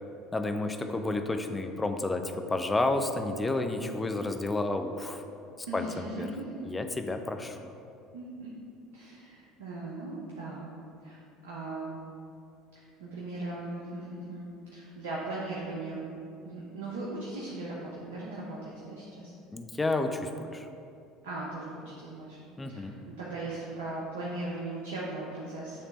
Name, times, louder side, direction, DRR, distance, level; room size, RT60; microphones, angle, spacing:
voice 1, 0.3-5.2 5.7-6.3 6.6-7.6 19.5-20.7 22.6-22.9, left 2 dB, 20° left, 6 dB, 0.5 m, -31 dB
voice 2, 5.7-6.7 8.1-8.5 8.9-10.7 11.0-11.9 12.7-16.1 16.4-19.3 21.2-25.8, right 2 dB, 80° right, -5 dB, 0.9 m, -38 dB
8.5 x 3.3 x 4.1 m, 2.6 s
hypercardioid pair, 70°, 0 cm